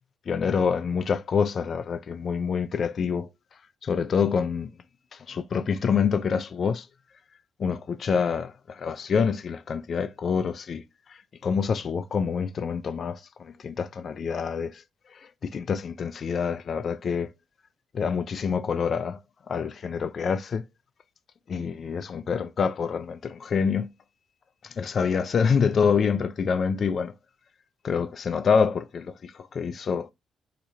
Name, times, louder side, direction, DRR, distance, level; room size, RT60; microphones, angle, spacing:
voice 1, 0.3-3.3 3.8-4.7 5.1-6.9 7.6-10.8 11.1-14.8 15.1-17.3 17.9-19.2 19.5-20.6 21.5-23.9 24.6-27.1 27.8-30.1, left 6 dB, 50° left, 0.3 m, -26 dB
2.8 x 2.4 x 4.2 m
cardioid pair, 90°, 0 cm